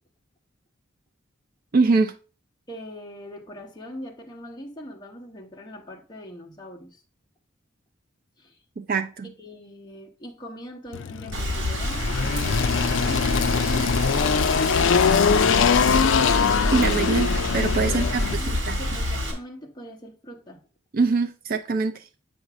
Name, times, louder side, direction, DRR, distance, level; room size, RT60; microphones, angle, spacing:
voice 1, 1.7-2.1 8.8-9.3 16.7-18.8 20.9-22.1, right 4 dB, 45° right, 0.4 m, -24 dB
voice 2, 2.7-7.0 8.4-8.6 9.4-16.3 17.9-20.6, left 1 dB, 20° left, 1.1 m, -41 dB
Engine, 10.9-18.3, left 6 dB, 65° left, 0.4 m, -22 dB
Rain, 11.3-19.3, left 1 dB, 65° right, 1.7 m, -27 dB
7.9 x 2.6 x 6.0 m
head